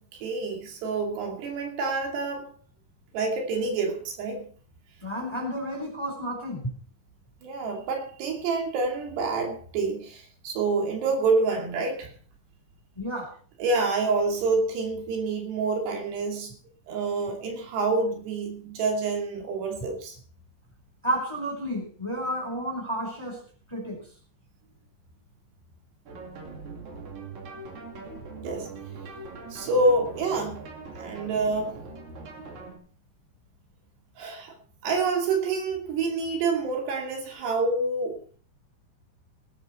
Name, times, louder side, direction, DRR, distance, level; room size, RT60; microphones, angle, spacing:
voice 1, 0.2-2.5 3.1-4.5 7.4-12.1 13.6-16.6 16.9-20.2 28.4-28.7 29.5-30.7 31.0-31.7 34.2-34.5 34.8-38.2, right 3 dB, 75° right, 3 dB, 4.7 m, -27 dB
voice 2, 5.0-6.7 13.0-13.3 21.0-23.4 23.7-24.0, equal, 5° left, 1 dB, 4.0 m, -31 dB
sound 1, 26.1-32.8, right 3 dB, 50° right, 3.6 m, -41 dB
18.0 x 11.0 x 4.4 m, 0.42 s
omnidirectional pair, 4.9 m